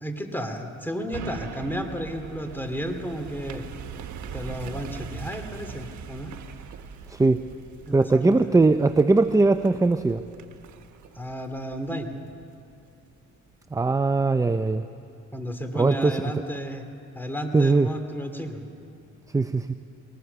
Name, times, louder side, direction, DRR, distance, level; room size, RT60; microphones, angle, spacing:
voice 1, 0.0-3.6 4.3-6.3 7.9-8.4 11.1-12.1 15.3-16.9 17.1-18.6, equal, 5° left, 6 dB, 2.4 m, -32 dB
sound 1, 1.1-12.6 13.0-13.1, right 7 dB, 75° right, 1.3 m, -41 dB
voice 2, 7.1-7.4 7.9-10.2 13.7-14.8 15.7-16.2 17.5-17.9 19.3-19.7, right 3 dB, 10° right, 10 dB, 0.5 m, -20 dB
21.0 x 19.0 x 6.9 m, 2.6 s
cardioid pair, 90°, 30 cm